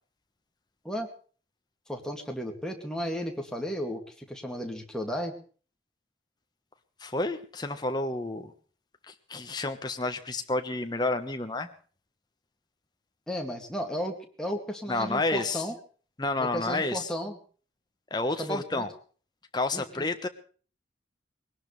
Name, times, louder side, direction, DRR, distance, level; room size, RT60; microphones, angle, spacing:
voice 1, 1.9-5.3 13.3-15.7 16.4-17.4 18.4-18.8 19.7-20.1, equal, 5° left, 2 dB, 2.3 m, -34 dB
voice 2, 7.0-8.5 9.1-11.7 14.9-15.7 16.2-17.1 18.1-18.9 19.5-20.3, left 2 dB, 20° left, 6 dB, 1.2 m, -30 dB
20.5 x 19.0 x 3.3 m, 0.41 s
head